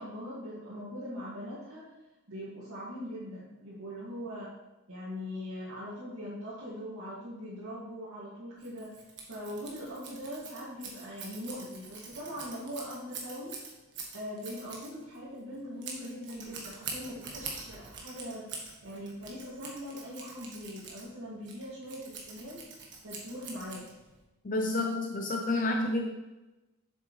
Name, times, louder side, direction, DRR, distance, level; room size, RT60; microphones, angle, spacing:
voice 1, 0.0-1.9 2.3-4.5 4.9-8.9 9.3-13.5 14.1-18.5 18.8-22.7 23.0-23.9, equal, 85° right, -10 dB, 2.3 m, -41 dB
Scissors, 8.6-24.2, right 4 dB, 55° right, 1.5 m, -45 dB
voice 2, 24.4-26.1, left 2 dB, 40° left, 2 dB, 0.6 m, -29 dB
7.9 x 6.9 x 3.3 m, 1.0 s
head